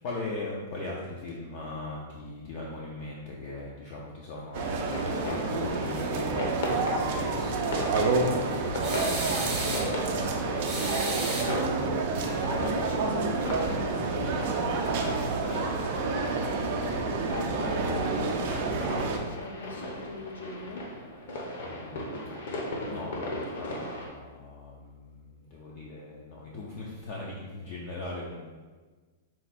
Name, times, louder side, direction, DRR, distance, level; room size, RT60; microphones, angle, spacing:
voice 1, 0.0-11.3 21.6-22.4 22.9-28.4, left 2 dB, 35° left, -4 dB, 0.5 m, -40 dB
sound 1, 4.5-24.1, left 1 dB, 55° left, 0.8 m, -38 dB
sound 2, 4.5-19.2, right 3 dB, 40° right, 0.4 m, -29 dB
sound 3, 8.8-9.9 10.6-11.9, right 2 dB, 15° right, 0.8 m, -34 dB
voice 2, 12.4-15.3 15.6-21.6, left 2 dB, 80° left, 2 dB, 0.7 m, -41 dB
4.3 x 2.4 x 4.1 m, 1.4 s
supercardioid pair, 175°, 0 cm